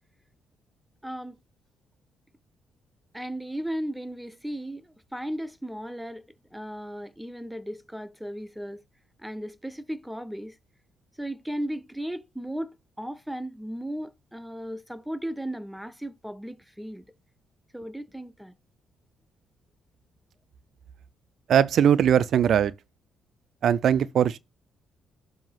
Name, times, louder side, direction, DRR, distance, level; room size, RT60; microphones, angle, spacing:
voice 1, 1.0-1.4 3.1-6.2 6.5-8.8 9.2-10.6 11.2-12.7 13.0-17.1 17.7-18.5, equal, 5° right, 0.7 m, -35 dB
voice 2, 21.5-22.7 23.6-24.4, right 9 dB, 65° right, 0.4 m, -20 dB
7.3 x 2.8 x 5.8 m
cardioid pair, 90°, 0 cm